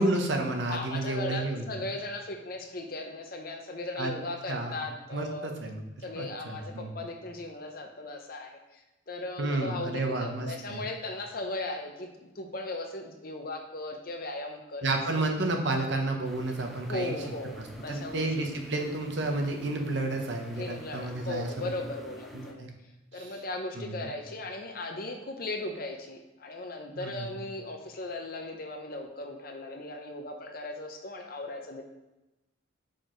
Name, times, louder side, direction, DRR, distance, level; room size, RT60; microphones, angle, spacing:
voice 1, 0.0-1.7 4.0-4.1 4.5-4.8 5.1-7.0 9.4-10.8 14.8-17.2 17.6-21.7 22.3-22.7 23.1-23.3 23.8-24.1 27.0-27.3, right 2 dB, 65° right, 3 dB, 0.8 m, -31 dB
voice 2, 0.7-5.5 6.0-12.1 12.4-14.9 16.9-18.3 20.5-22.7 23.1-31.8, left 2 dB, 50° left, 4 dB, 0.7 m, -37 dB
sound 1, 16.2-22.5, right 1 dB, ahead, 0.7 m, -47 dB
4.9 x 4.5 x 4.4 m, 1.0 s
head